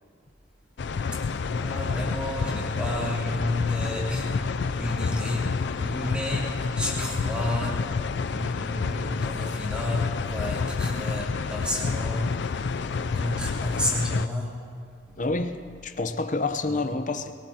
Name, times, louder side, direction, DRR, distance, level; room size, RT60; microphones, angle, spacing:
sound 1, 0.8-14.3, left 5 dB, 60° left, 0.4 m, -29 dB
voice 1, 1.5-4.4 4.8-7.9 8.3-14.7 16.6-16.8, left 1 dB, 5° right, -6 dB, 3.1 m, -31 dB
voice 2, 15.1-17.3, left 3 dB, 40° left, 8 dB, 0.8 m, -28 dB
23.0 x 18.0 x 2.9 m, 2.3 s
head